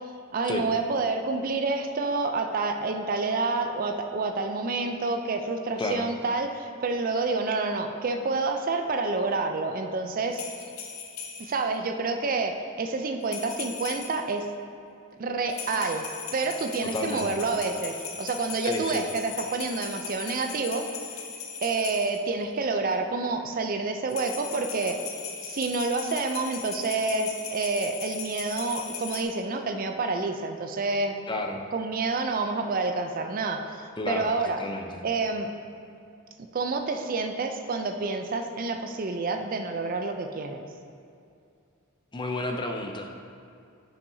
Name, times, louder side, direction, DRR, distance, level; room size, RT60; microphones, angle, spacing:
voice 1, 0.3-10.4 11.4-14.5 15.2-16.0 16.3-20.8 21.6-25.0 25.4-31.1 31.7-34.6 35.0-35.5 36.5-40.6, right 3 dB, 40° right, 5 dB, 0.4 m, -28 dB
sound 1, 10.3-11.6 13.2-14.3 15.5-22.2 24.1-29.2, left 6 dB, 80° left, 0.8 m, -38 dB
voice 2, 16.8-17.4 18.6-19.0 31.3-31.6 34.0-35.0 42.1-43.3, left 2 dB, 20° left, 3 dB, 0.5 m, -32 dB
10.0 x 5.7 x 2.7 m, 2.5 s
head